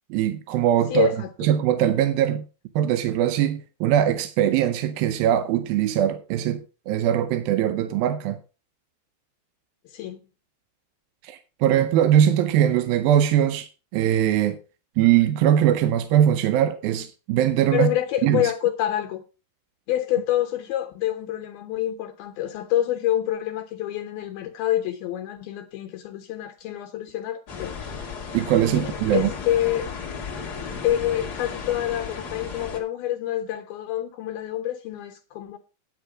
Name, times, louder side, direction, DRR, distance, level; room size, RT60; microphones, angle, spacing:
voice 1, 0.1-1.1 1.4-2.4 2.8-6.6 6.9-8.4 11.2-14.6 15.0-17.9 18.2-18.4 28.3-29.3, right 11 dB, 75° right, 2.4 m, -21 dB
voice 2, 0.9-1.3 9.9-10.2 17.7-19.2 19.9-27.8 28.7-29.9 30.8-35.6, left 12 dB, 80° left, 2.7 m, -27 dB
sound 1, 27.5-32.8, left 5 dB, 45° left, 1.3 m, -34 dB
9.7 x 8.4 x 4.9 m
omnidirectional pair, 4.5 m